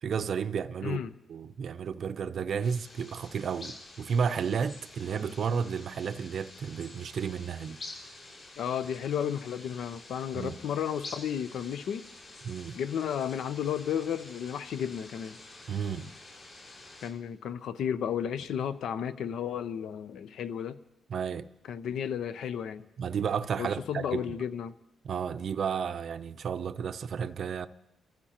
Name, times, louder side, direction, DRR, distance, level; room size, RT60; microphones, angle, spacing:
voice 1, 0.0-1.0 1.3-7.8 10.3-10.6 12.4-12.8 15.7-16.1 21.1-21.5 23.0-24.4 25.0-27.7, right 6 dB, 55° right, 0.5 m, -32 dB
voice 2, 0.8-1.1 8.6-12.0 12.7-15.4 17.0-20.8 21.7-22.8 23.6-24.7, left 8 dB, 70° left, 0.6 m, -33 dB
sound 1, 2.6-17.1, left 2 dB, 55° left, 6.5 m, -49 dB
29.5 x 14.5 x 2.9 m
cardioid pair, 110°, 0 cm